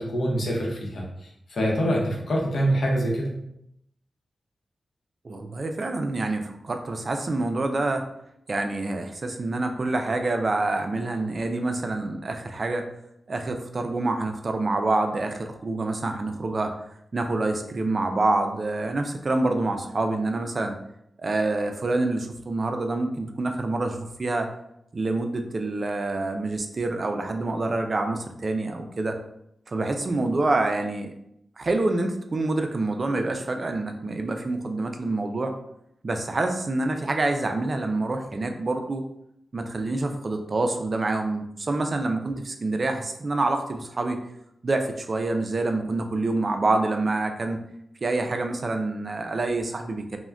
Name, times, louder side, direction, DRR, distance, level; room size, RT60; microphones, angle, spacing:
voice 1, 0.0-3.4, equal, 80° left, -2 dB, 0.7 m, -25 dB
voice 2, 5.2-8.1 8.5-12.9 13.3-16.7 17.1-20.7 21.2-24.5 24.9-29.2 29.7-31.1 31.6-35.6 36.0-39.1 39.5-44.2 44.6-47.6 48.0-50.2, right 2 dB, 50° right, 5 dB, 0.3 m, -27 dB
2.4 x 2.1 x 3.3 m, 0.78 s
wide cardioid pair, 75°, 0 cm